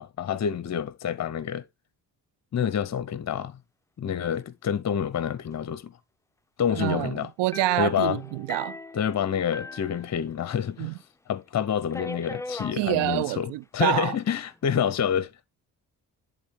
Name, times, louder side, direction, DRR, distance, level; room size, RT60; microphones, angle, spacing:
voice 1, 0.0-1.6 2.5-3.6 4.0-6.0 6.6-7.3 7.8-8.2 8.9-11.0 11.3-15.3, left 8 dB, 40° left, 0.8 m, -28 dB
voice 2, 6.7-8.8 10.8-10.9 12.8-14.1, right 18 dB, 80° right, 0.5 m, -27 dB
sound 1, 7.5-10.7 11.0-11.1 11.9-12.8 13.7-14.2, left 2 dB, 5° left, 0.5 m, -40 dB
11.0 x 3.6 x 3.6 m
cardioid pair, 65°, 41 cm